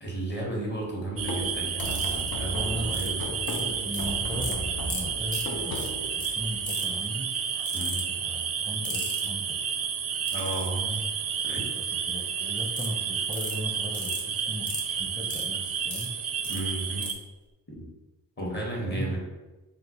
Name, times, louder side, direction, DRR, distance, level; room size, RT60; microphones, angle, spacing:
voice 1, 0.0-3.2 7.7-8.0 10.3-11.1 11.4-11.7 16.5-17.2 17.7-17.8 18.4-19.2, right 2 dB, 30° left, -2 dB, 1.2 m, -33 dB
sound 1, 1.1-6.7, left 1 dB, 70° left, 0.6 m, -36 dB
sound 2, 1.2-17.1, right 7 dB, 45° right, 0.4 m, -31 dB
sound 3, 1.8-2.3 2.9-3.1 3.5-4.1 4.4-4.5 4.9-5.0 5.3-5.4 5.7-5.9 6.2-6.3 6.7-7.0 7.7-8.0 8.8-9.2 10.3-10.7 12.8-12.9 13.3-13.5 13.9-14.2 14.7-14.8 15.3-16.1 16.4-16.6 17.0-17.1, left 3 dB, 55° left, 1.0 m, -35 dB
voice 2, 2.5-3.2 3.5-7.3 8.2-9.6 12.1-16.1 18.4-19.2, equal, ahead, -1 dB, 0.6 m, -37 dB
3.7 x 2.1 x 2.9 m, 1.1 s
cardioid pair, 60°, 35 cm